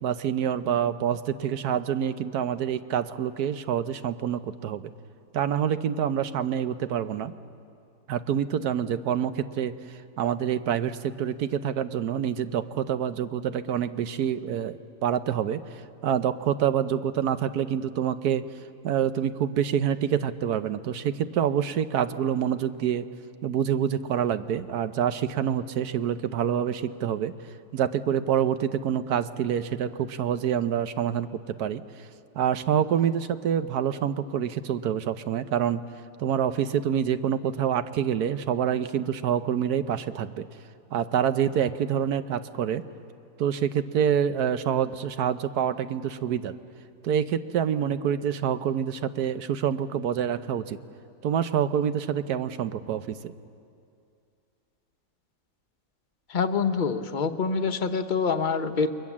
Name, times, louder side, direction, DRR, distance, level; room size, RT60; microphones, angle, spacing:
voice 1, 0.0-4.9 5.3-7.3 8.1-15.6 16.0-18.4 18.8-23.0 23.4-27.3 27.7-31.8 32.3-35.8 36.2-40.5 40.9-42.8 43.4-46.5 47.0-50.8 51.2-53.3, right 9 dB, 75° right, 12 dB, 1.3 m, -27 dB
voice 2, 56.3-58.9, left 5 dB, 35° left, 7 dB, 0.9 m, -26 dB
29.0 x 22.5 x 7.3 m, 2.4 s
omnidirectional pair, 1.8 m